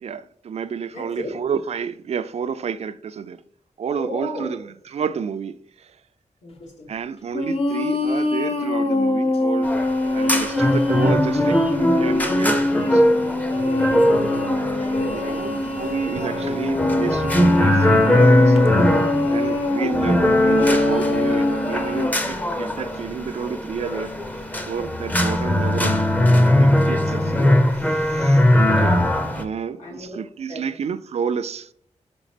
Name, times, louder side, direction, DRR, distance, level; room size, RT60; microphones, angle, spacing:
voice 1, 0.0-3.4 3.8-6.0 6.9-9.7 10.1-13.1 14.8-18.6 19.3-27.3 27.9-29.0 29.3-31.7, right 7 dB, 60° right, 0.4 m, -30 dB
voice 2, 0.9-1.3 3.8-4.5 6.4-6.9 10.0-10.4 13.5-13.9 14.1-14.5 14.9-15.4 19.2-19.9 27.2-27.7 29.8-30.2 30.5-30.6, left 1 dB, 80° left, 2.6 m, -34 dB
sound 1, 7.3-22.1, left 2 dB, 50° left, 0.7 m, -23 dB
sound 2, 9.6-29.4, left 1 dB, 15° left, 0.6 m, -20 dB
sound 3, 13.0-18.3, right 3 dB, 80° right, 0.8 m, -38 dB
5.7 x 5.2 x 5.0 m
wide cardioid pair, 180°, 12 cm